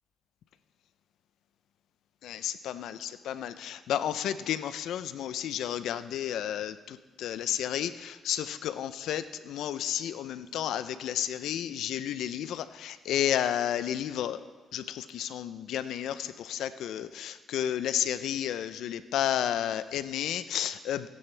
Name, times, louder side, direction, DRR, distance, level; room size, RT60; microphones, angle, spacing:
voice 1, 2.2-6.7 7.2-14.4 14.7-21.1, left 10 dB, 80° left, 14 dB, 0.5 m, -32 dB
18.0 x 10.5 x 3.3 m, 1.4 s
cardioid pair, 90°, 0 cm